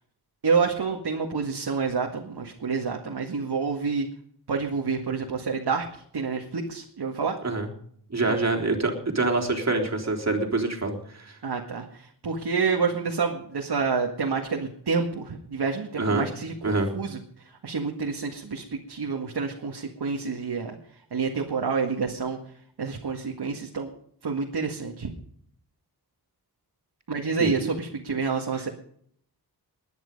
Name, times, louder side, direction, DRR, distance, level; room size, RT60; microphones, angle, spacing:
voice 1, 0.4-4.1 4.5-5.9 6.1-7.3 11.4-17.2 17.6-20.8 21.1-22.4 22.8-23.9 24.2-25.1 27.1-28.7, right 5 dB, 80° right, 1 dB, 2.0 m, -28 dB
voice 2, 8.1-11.4 16.0-16.3 16.6-16.9 27.4-27.5, right 3 dB, 40° right, 1 dB, 3.7 m, -26 dB
20.0 x 11.0 x 5.4 m, 0.64 s
wide cardioid pair, 85°, 39 cm